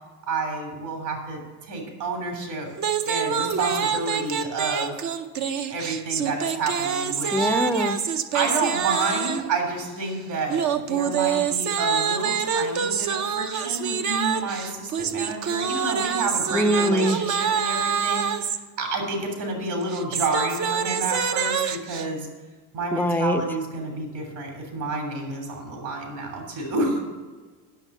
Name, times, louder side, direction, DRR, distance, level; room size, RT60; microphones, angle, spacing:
voice 1, 0.3-2.7 3.0-4.9 5.7-7.5 8.3-22.3 22.7-27.0, right 3 dB, 60° right, 1 dB, 3.1 m, -29 dB
sound 1, 2.8-9.5 10.5-18.6 19.8-22.0, right 7 dB, 40° right, 0.8 m, -26 dB
voice 2, 7.3-8.0 16.5-17.2 22.9-23.4, equal, 5° left, 8 dB, 0.6 m, -23 dB
10.0 x 6.3 x 7.2 m, 1.3 s
hypercardioid pair, 80°, 45 cm